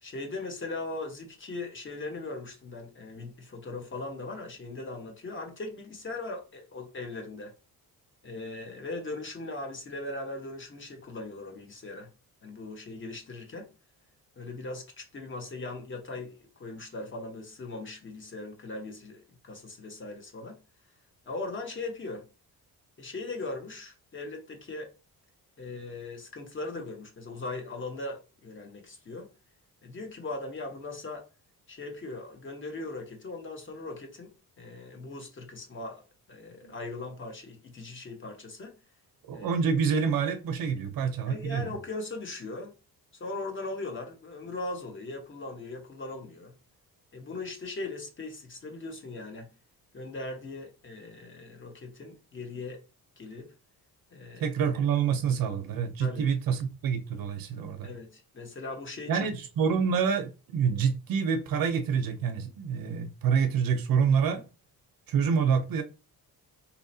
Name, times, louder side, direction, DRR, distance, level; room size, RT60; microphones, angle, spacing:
voice 1, 0.0-7.5 8.2-12.1 12.4-13.7 14.4-20.6 21.3-22.3 23.0-24.9 25.6-29.3 29.8-31.3 31.7-34.3 34.6-36.0 36.3-38.7 39.3-39.5 41.3-42.7 43.1-46.5 47.1-49.5 49.9-52.8 53.2-53.5 54.1-54.5 56.0-56.3 57.8-59.3, left 2 dB, 30° left, 0.9 m, -39 dB
voice 2, 39.3-41.7 54.4-57.9 59.1-64.4 65.1-65.8, right 6 dB, 65° right, 0.6 m, -27 dB
4.2 x 2.8 x 2.6 m
cardioid pair, 145°, 37 cm